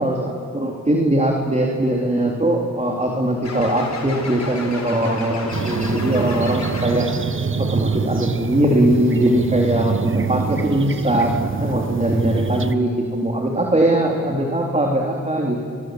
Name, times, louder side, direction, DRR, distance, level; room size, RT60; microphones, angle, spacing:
voice 1, 0.0-7.1 7.6-15.8, right 1 dB, 20° right, 0 dB, 3.6 m, -20 dB
sound 1, 3.4-7.2, left 3 dB, 50° left, 4.7 m, -31 dB
sound 2, 5.5-12.7, right 5 dB, 35° right, 1.0 m, -25 dB
30.0 x 22.0 x 7.8 m, 2.5 s
cardioid pair, 50°, 34 cm